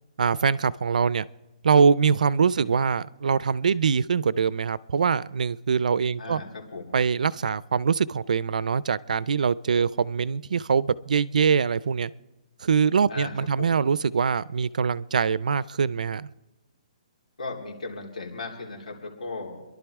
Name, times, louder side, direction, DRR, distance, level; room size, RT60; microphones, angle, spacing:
voice 1, 0.2-1.3 1.6-6.4 6.9-12.1 12.6-16.3, right 6 dB, 80° right, 0.4 m, -23 dB
voice 2, 6.2-7.0 13.1-13.8 17.4-19.6, left 3 dB, 80° left, 3.7 m, -37 dB
29.5 x 11.5 x 3.6 m
hypercardioid pair, 170°, 4 cm